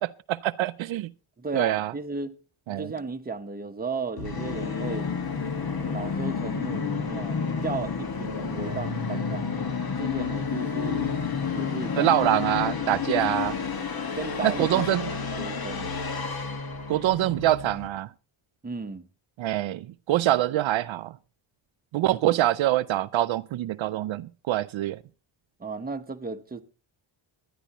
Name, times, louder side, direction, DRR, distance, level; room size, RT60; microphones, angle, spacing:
voice 1, 0.0-1.1 1.5-1.9 2.7-2.9 12.0-13.6 14.4-15.1 16.9-18.1 19.4-21.2 21.9-25.0, right 14 dB, 70° right, 0.5 m, -25 dB
voice 2, 1.4-2.3 2.7-5.1 5.8-11.1 11.5-12.1 12.6-12.7 14.1-16.0 18.6-19.1 25.6-26.6, right 4 dB, 20° right, 0.9 m, -35 dB
Musical instrument, 4.2-17.9, left 5 dB, 45° left, 1.7 m, -30 dB
23.5 x 10.0 x 2.9 m
wide cardioid pair, 145°, 49 cm